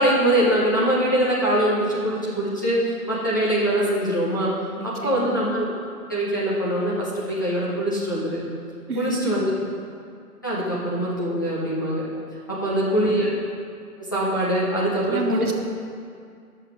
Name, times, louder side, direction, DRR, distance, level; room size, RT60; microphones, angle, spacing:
voice 1, 0.0-4.5 4.8-5.7 6.1-8.4 8.9-9.5 10.4-12.1 12.5-13.4 14.0-15.5, right 1 dB, 15° left, -8 dB, 0.5 m, -23 dB
voice 2, 4.8-5.3 8.9-9.4 12.6-13.0 15.0-15.5, right 2 dB, 75° right, 2 dB, 1.4 m, -29 dB
9.8 x 6.7 x 4.7 m, 2.3 s
figure-of-eight pair, 140°, 45 cm